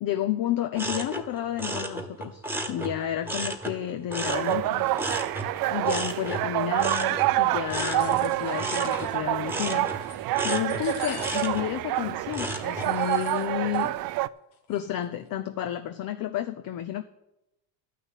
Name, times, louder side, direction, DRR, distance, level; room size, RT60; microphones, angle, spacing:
voice 1, 0.0-2.4 2.7-4.9 5.7-13.9 14.7-17.0, left 11 dB, 45° left, 8 dB, 0.8 m, -31 dB
sound 1, 0.7-3.8 4.1-12.9 13.4-13.8, right 1 dB, 5° right, 1.6 m, -34 dB
sound 2, 4.3-14.3, right 17 dB, 50° right, 0.5 m, -27 dB
sound 3, 7.6-9.2 9.7-10.2 10.5-11.7 12.0-12.1 12.5-13.9 14.2-14.3 14.5-15.0, left 6 dB, 75° left, 2.3 m, -44 dB
12.0 x 6.1 x 9.1 m, 0.89 s
supercardioid pair, 95°, 48 cm